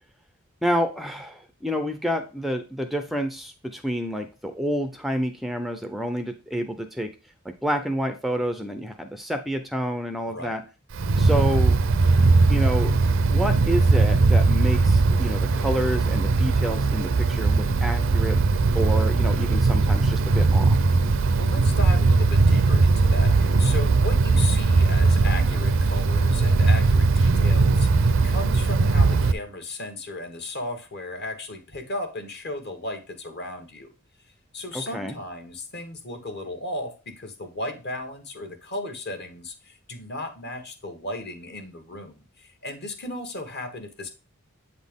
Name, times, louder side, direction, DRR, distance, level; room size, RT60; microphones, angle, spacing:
voice 1, 0.6-7.1 7.4-10.6 11.2-11.8 12.5-12.9 13.2-18.4 18.7-20.8 34.7-35.2, equal, ahead, 0.4 m, -28 dB
voice 2, 10.3-10.6 21.1-33.9 34.5-44.1, left 1 dB, 50° left, 1.3 m, -35 dB
Wind, 10.9-29.3, right 3 dB, 65° right, 0.5 m, -19 dB
7.8 x 4.2 x 3.6 m
head